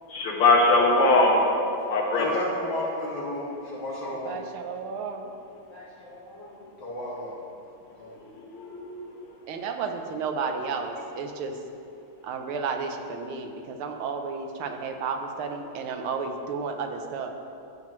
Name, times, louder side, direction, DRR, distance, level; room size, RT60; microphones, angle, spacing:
voice 1, 0.1-1.4 1.8-2.3 8.5-9.1, left 2 dB, 85° left, -1 dB, 2.2 m, -21 dB
voice 2, 1.3-4.4 5.7-7.4 7.8-8.1, left 1 dB, 50° left, -6 dB, 2.4 m, -35 dB
voice 3, 4.2-5.3 9.5-11.6 12.2-17.3, right 5 dB, 80° right, 5 dB, 1.6 m, -32 dB
13.0 x 7.7 x 3.0 m, 2.6 s
omnidirectional pair, 2.4 m